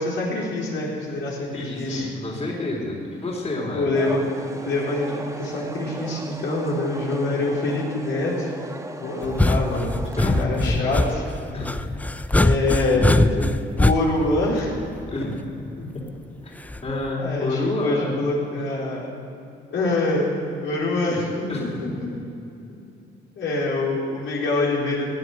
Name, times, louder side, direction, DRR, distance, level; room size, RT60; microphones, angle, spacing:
voice 1, 0.0-2.1 3.7-4.3 4.6-8.5 9.0-10.1 10.4-11.2 12.4-13.2 13.8-14.7 17.1-19.1 19.7-22.1 23.4-25.1, left 2 dB, 70° left, -5 dB, 4.2 m, -25 dB
voice 2, 1.5-3.9 10.2-10.7 11.5-12.2 12.9-13.5 15.1-15.4 16.4-16.5 16.8-18.1 21.5-22.2, left 2 dB, 30° left, -2 dB, 3.9 m, -29 dB
sound 1, 3.9-10.4, right 2 dB, 15° right, 1.3 m, -36 dB
sound 2, 9.2-15.3 16.7-17.1, left 2 dB, 5° left, 0.5 m, -22 dB
17.5 x 9.5 x 8.0 m, 2.8 s
cardioid pair, 90°, 20 cm